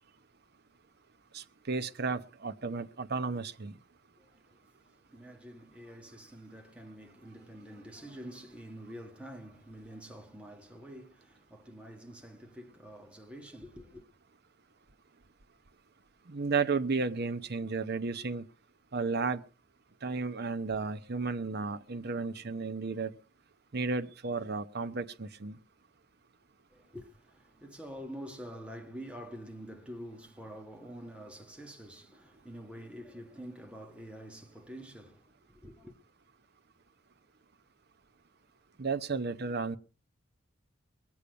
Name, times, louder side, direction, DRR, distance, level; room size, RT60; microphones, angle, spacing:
voice 1, 1.3-3.7 16.3-18.4 18.9-19.4 20.0-23.1 23.7-25.6 38.8-39.8, right 4 dB, 55° right, 0.8 m, -33 dB
voice 2, 4.2-4.6 5.1-14.1 26.7-36.0, equal, 5° right, 1.6 m, -47 dB
22.0 x 8.5 x 5.2 m
head